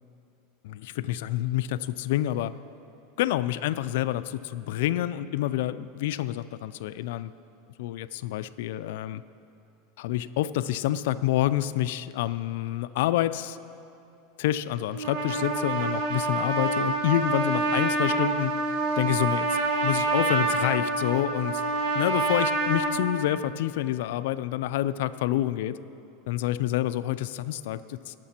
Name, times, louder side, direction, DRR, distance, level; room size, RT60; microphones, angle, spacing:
voice 1, 0.6-2.6 3.2-7.3 7.8-9.2 10.0-13.6 14.4-18.5 19.0-21.6 21.9-25.8 26.3-28.1, left 13 dB, 70° left, 13 dB, 0.3 m, -28 dB
Trumpet, 14.9-22.9, right 3 dB, 55° right, 1.3 m, -27 dB
18.0 x 6.7 x 4.3 m, 2.7 s
supercardioid pair, 155°, 0 cm